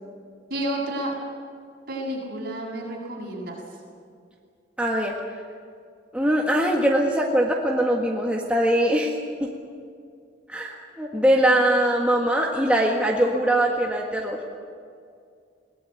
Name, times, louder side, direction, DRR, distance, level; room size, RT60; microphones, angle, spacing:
voice 1, 0.5-1.1 1.9-3.6, right 1 dB, 55° right, -2 dB, 7.3 m, -30 dB
voice 2, 4.8-5.1 6.1-9.1 9.4-9.5 10.5-14.4, right 1 dB, 5° right, -1 dB, 1.7 m, -22 dB
21.0 x 18.5 x 9.2 m, 2.3 s
head